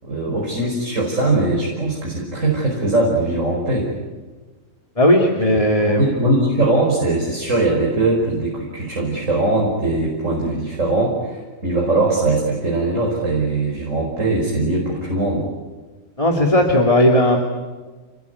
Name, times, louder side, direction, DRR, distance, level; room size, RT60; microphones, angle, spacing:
voice 1, 0.0-3.9 5.9-15.4, right 2 dB, 70° right, -2 dB, 5.9 m, -20 dB
voice 2, 5.0-6.1 16.2-17.4, left 1 dB, 25° left, 3 dB, 2.7 m, -16 dB
30.0 x 20.5 x 9.6 m, 1.3 s
omnidirectional pair, 1.4 m